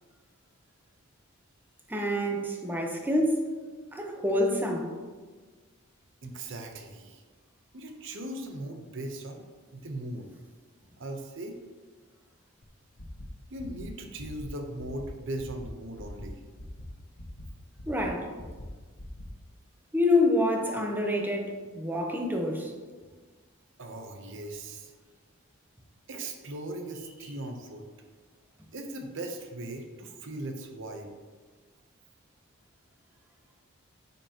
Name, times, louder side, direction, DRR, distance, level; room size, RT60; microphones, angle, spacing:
voice 1, 1.9-3.5 3.9-5.0 17.9-18.3 19.9-22.7, left 1 dB, 10° right, 1 dB, 0.8 m, -27 dB
voice 2, 6.2-7.2 7.7-9.4 9.7-10.3 11.0-11.6 13.5-16.4 23.8-24.9 26.1-27.9 28.7-31.1, right 1 dB, 65° right, 4 dB, 0.9 m, -38 dB
sound 1, 12.6-12.7 13.0-13.3 13.6-13.9 14.2-14.5 14.8-15.1 15.4-15.7 16.0-16.3 16.6-16.9 17.2-17.4 17.8-18.1 18.4-18.6 19.0-19.3, left 1 dB, 75° left, 1.2 m, -44 dB
8.9 x 5.4 x 3.0 m, 1.4 s
head